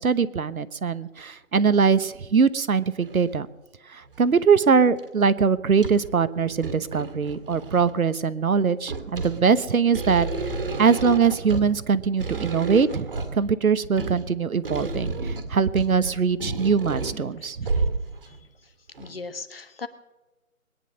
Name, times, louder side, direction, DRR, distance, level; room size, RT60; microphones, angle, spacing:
voice 1, 0.0-3.5 3.9-10.3 10.8-13.1 13.3-17.7, right 6 dB, 80° right, 14 dB, 1.2 m, -22 dB
sound 1, 1.2-1.3 1.9-2.0 3.0-3.4 4.1-4.5 5.0-5.1 5.4-6.2 6.5-8.0 8.6-18.4 19.0-19.1, right 3 dB, 40° right, 2.2 m, -31 dB
voice 2, 17.4-17.8 18.3-18.4 19.0-19.9, left 4 dB, 45° left, 10 dB, 1.4 m, -38 dB
22.0 x 10.5 x 6.4 m, 1.1 s
hypercardioid pair, 175°, 42 cm